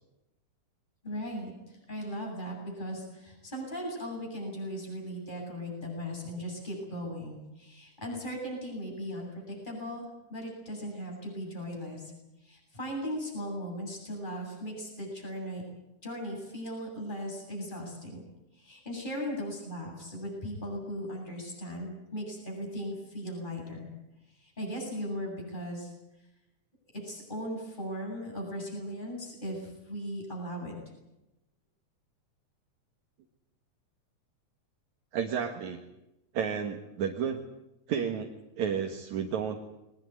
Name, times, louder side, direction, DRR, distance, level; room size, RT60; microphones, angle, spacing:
voice 1, 1.0-12.1 12.4-15.6 16.0-18.2 18.5-23.9 24.3-25.9 26.9-30.7, equal, 15° left, 0 dB, 8.2 m, -38 dB
voice 2, 35.1-35.8 36.3-37.4 37.9-38.3 38.6-39.6, right 7 dB, 75° right, 2 dB, 2.9 m, -31 dB
22.5 x 20.0 x 9.6 m, 0.92 s
omnidirectional pair, 3.4 m